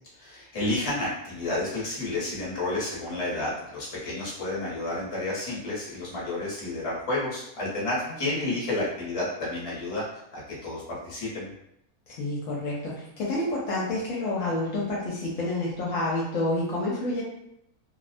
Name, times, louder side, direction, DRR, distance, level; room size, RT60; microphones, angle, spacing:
voice 1, 0.2-10.0 10.3-11.5, left 2 dB, 30° left, -6 dB, 0.7 m, -31 dB
voice 2, 8.1-8.5 12.1-17.2, left 2 dB, 70° left, -5 dB, 0.9 m, -29 dB
2.4 x 2.1 x 2.5 m, 0.79 s
omnidirectional pair, 1.5 m